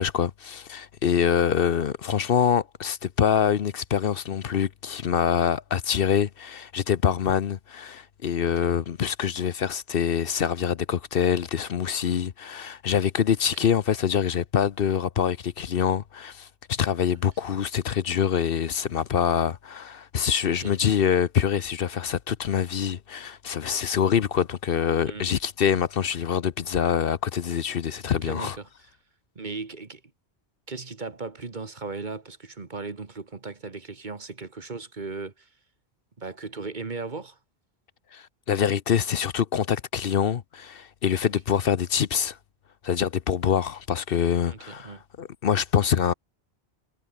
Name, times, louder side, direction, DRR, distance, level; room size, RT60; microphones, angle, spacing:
voice 1, 0.0-28.6 38.1-42.4 42.8-46.1, left 8 dB, 65° left, 0.9 m, -25 dB
voice 2, 28.1-28.9 29.3-30.0 30.7-35.5 36.2-37.4 44.5-45.0, right 3 dB, 45° right, 1.8 m, -37 dB
omnidirectional pair, 1.1 m